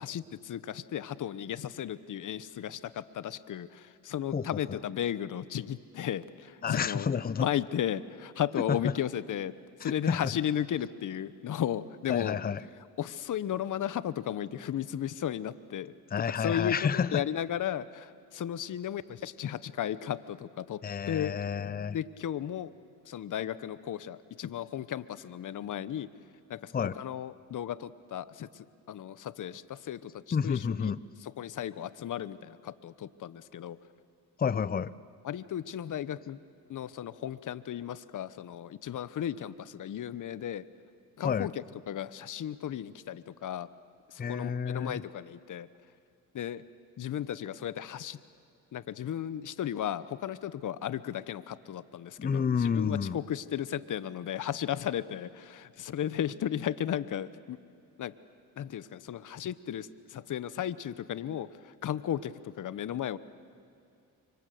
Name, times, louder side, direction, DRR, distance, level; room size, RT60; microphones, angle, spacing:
voice 1, 0.1-3.7 4.0-9.5 9.8-12.4 13.0-15.9 16.4-16.8 17.1-18.1 18.3-20.8 21.1-21.3 21.9-22.7 23.1-26.1 26.5-26.6 27.0-28.5 28.9-30.1 30.4-30.6 30.8-30.9 31.4-33.8 35.3-36.4 36.7-40.6 41.2-41.5 41.9-43.7 44.3-45.7 46.3-46.6 47.0-48.2 48.7-52.4 52.7-57.6 58.0-58.1 58.6-59.9 60.1-61.5 61.8-62.3 62.6-63.2, left 10 dB, 50° left, 16 dB, 1.0 m, -34 dB
voice 2, 4.3-4.8 6.6-7.5 8.6-9.0 9.8-10.3 12.1-12.7 16.1-17.3 20.8-22.0 26.7-27.0 30.3-31.0 34.4-34.9 41.2-41.5 44.2-45.0 52.2-53.2, left 6 dB, 20° left, 19 dB, 0.7 m, -30 dB
29.5 x 25.0 x 7.8 m, 2.4 s
supercardioid pair, 75°, 41 cm